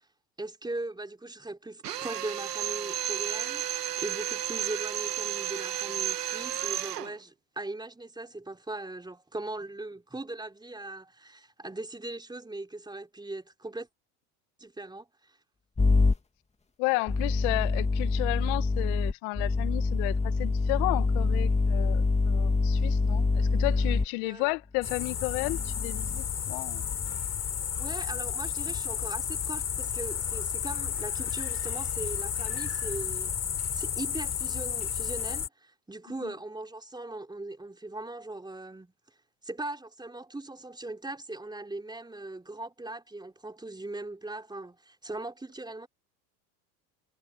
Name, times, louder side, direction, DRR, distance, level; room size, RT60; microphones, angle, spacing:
voice 1, 0.4-13.9 14.6-15.4 24.2-24.5 27.8-33.4 33.7-38.9 39.4-45.9, right 2 dB, 10° right, 3.9 m, -39 dB
Drill, 1.8-7.1, right 11 dB, 90° right, 2.0 m, -32 dB
sound 1, 15.8-16.2 17.1-24.0 25.1-26.3 26.8-27.2, left 3 dB, 15° left, 2.4 m, -26 dB
voice 2, 16.8-26.8, left 27 dB, 60° left, 1.8 m, -33 dB
sound 2, 24.8-35.5, left 8 dB, 35° left, 4.3 m, -32 dB
hypercardioid pair, 85°, 46 cm